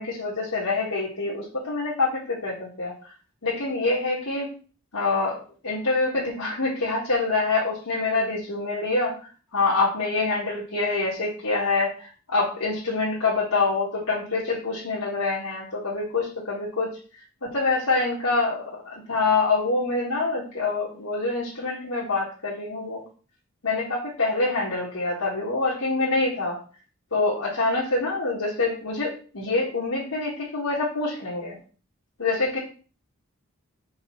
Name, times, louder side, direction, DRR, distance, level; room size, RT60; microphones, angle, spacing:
voice 1, 0.0-2.9 3.4-4.5 4.9-5.4 5.6-16.9 17.5-23.0 23.6-26.6 27.1-31.6 32.2-32.6, left 3 dB, 85° left, -6 dB, 1.9 m, -26 dB
5.4 x 3.7 x 5.8 m, 0.39 s
head